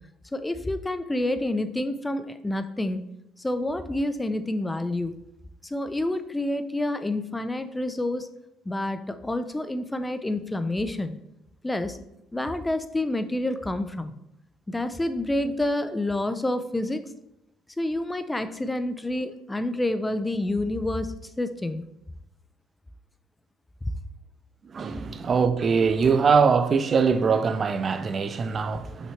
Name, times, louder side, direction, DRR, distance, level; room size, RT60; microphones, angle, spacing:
voice 1, 0.3-3.0 3.4-5.1 5.6-8.3 8.7-11.1 11.6-12.0 12.3-14.1 14.7-17.0 17.8-21.8 23.8-23.9, left 1 dB, 15° left, 0.6 m, -28 dB
voice 2, 24.6-29.1, right 5 dB, 40° right, 0.6 m, -22 dB
5.9 x 5.5 x 3.2 m
hypercardioid pair, 55°, 0 cm